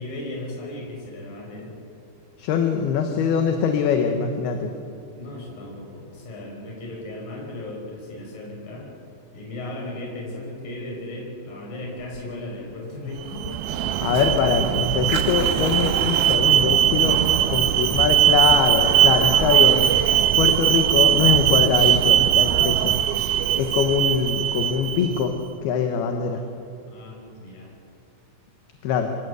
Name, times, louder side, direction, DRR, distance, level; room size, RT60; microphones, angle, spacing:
voice 1, 0.0-1.8 5.2-8.9 9.3-13.5 26.9-27.7, left 1 dB, 55° left, -1 dB, 6.8 m, -36 dB
voice 2, 2.4-4.7 14.0-17.2 17.5-19.9 20.4-23.0 23.6-25.3 25.6-26.4 28.8-29.1, left 6 dB, 75° left, 5 dB, 3.1 m, -23 dB
Fire, 12.0-23.0, right 2 dB, 40° right, 0.8 m, -37 dB
Alarm, 13.2-25.2, right 11 dB, 80° right, 2.6 m, -20 dB
26.0 x 17.0 x 8.2 m, 2.5 s
omnidirectional pair, 4.7 m